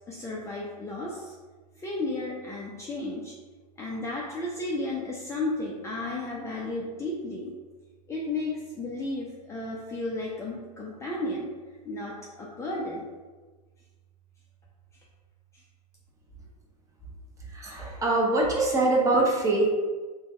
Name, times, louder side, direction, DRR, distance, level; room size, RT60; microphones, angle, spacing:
voice 1, 0.1-1.3 1.8-3.3 3.8-7.5 8.1-11.5 11.8-13.0, left 2 dB, 15° left, -4 dB, 0.5 m, -33 dB
voice 2, 17.5-19.7, right 2 dB, 15° right, -2 dB, 0.7 m, -23 dB
4.3 x 2.2 x 3.6 m, 1.3 s
supercardioid pair, 130°, 21 cm